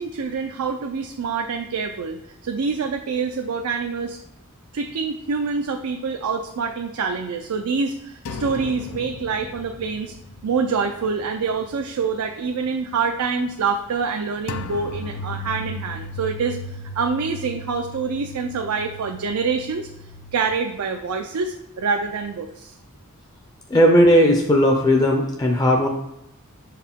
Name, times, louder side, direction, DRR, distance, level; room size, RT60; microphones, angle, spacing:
voice 1, 0.0-4.2 4.7-10.1 10.4-19.9 20.3-22.7, right 5 dB, 85° right, 4 dB, 0.5 m, -26 dB
sound 1, 8.3-11.4 11.7-11.9 14.5-20.5, left 2 dB, 85° left, 0.4 m, -36 dB
voice 2, 23.7-25.9, equal, 15° left, 1 dB, 0.5 m, -16 dB
5.7 x 4.7 x 3.6 m, 0.87 s
head